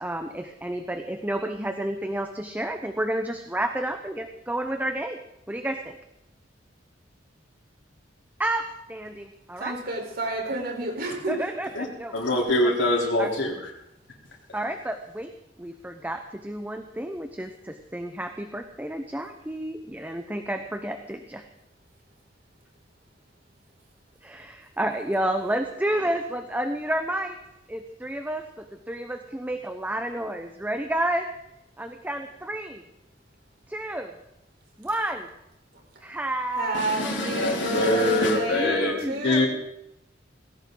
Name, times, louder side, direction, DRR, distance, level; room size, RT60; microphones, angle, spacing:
voice 1, 0.0-5.2 5.5-6.0 8.4-9.8 11.3-12.7 13.2-13.3 14.5-15.3 15.6-21.4 24.2-27.4 27.7-31.3 31.8-32.8 33.7-34.1 34.8-35.3 36.0-37.5 37.8-39.4, right 1 dB, 10° right, 6 dB, 0.8 m, -31 dB
voice 2, 9.6-11.4 36.6-39.5, right 2 dB, 55° right, 1 dB, 4.2 m, -30 dB
voice 3, 12.1-13.7 36.7-38.9 39.2-39.5, left 1 dB, 90° left, -2 dB, 3.9 m, -24 dB
19.0 x 17.5 x 3.9 m, 0.83 s
head